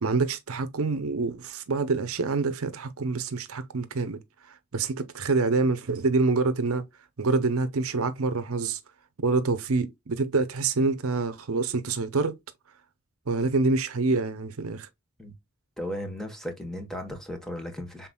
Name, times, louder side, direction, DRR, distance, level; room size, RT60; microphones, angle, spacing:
voice 1, 0.0-4.2 4.5-6.8 7.2-8.8 9.2-12.4 13.3-14.9, right 3 dB, 70° right, 0.7 m, -26 dB
voice 2, 15.8-18.1, equal, ahead, 1.1 m, -35 dB
5.8 x 3.8 x 2.2 m
head